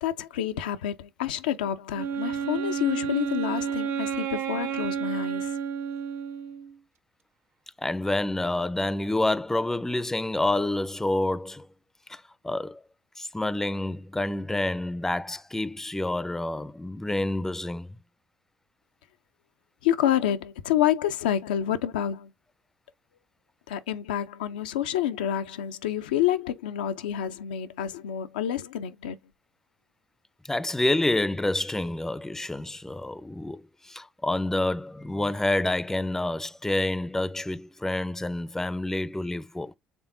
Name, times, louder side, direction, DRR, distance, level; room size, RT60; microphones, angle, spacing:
voice 1, 0.0-5.6 19.8-22.3 23.7-29.2, left 10 dB, 85° left, 0.3 m, -28 dB
Wind instrument woodwind instrument, 1.9-6.8, right 7 dB, 60° right, 0.6 m, -31 dB
voice 2, 7.8-11.7 12.1-12.8 13.2-17.9 30.5-39.7, left 2 dB, 10° left, 0.4 m, -28 dB
6.0 x 3.4 x 2.6 m
hypercardioid pair, 60°, 4 cm